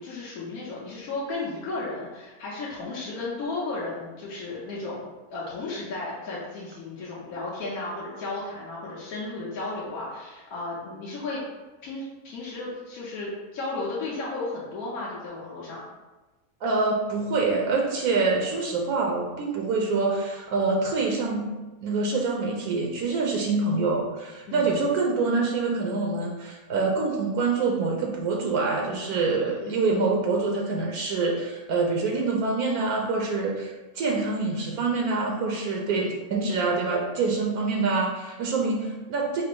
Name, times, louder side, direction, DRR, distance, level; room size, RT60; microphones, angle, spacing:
voice 1, 0.0-11.4 11.8-15.8 24.5-24.8 29.4-30.2 35.9-36.2, left 2 dB, 70° left, -7 dB, 1.3 m, -34 dB
voice 2, 16.6-21.5 21.8-39.4, right 3 dB, 75° right, -1 dB, 1.1 m, -26 dB
4.9 x 2.0 x 4.5 m, 1.2 s
omnidirectional pair, 1.6 m